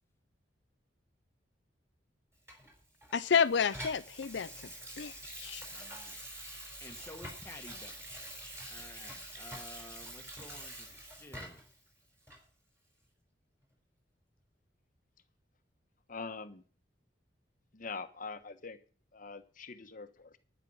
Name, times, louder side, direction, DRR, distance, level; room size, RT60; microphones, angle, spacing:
Water tap faucet / Sink (filling or washing), 2.5-11.8 12.3-12.4, right 1 dB, 15° right, 4.4 m, -46 dB
voice 1, 3.1-4.5 5.0-5.6, left 6 dB, 75° left, 0.5 m, -30 dB
voice 2, 5.7-6.2 6.8-8.1 8.7-11.6, left 1 dB, 15° left, 1.4 m, -52 dB
voice 3, 16.1-16.6 17.7-18.8 19.1-20.4, left 4 dB, 50° left, 1.2 m, -43 dB
11.0 x 10.0 x 5.5 m
head